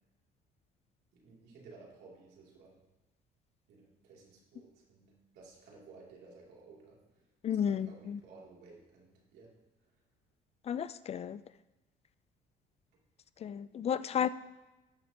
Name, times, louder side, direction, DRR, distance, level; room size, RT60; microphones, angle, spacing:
voice 1, 1.1-2.8 3.7-7.2 7.5-9.5, right 3 dB, 80° right, -3 dB, 2.8 m, -56 dB
voice 2, 7.4-8.2 10.7-11.4 13.4-14.3, left 8 dB, 40° left, 15 dB, 0.4 m, -33 dB
16.5 x 6.3 x 2.9 m, 1.0 s
cardioid pair, 110°, 17 cm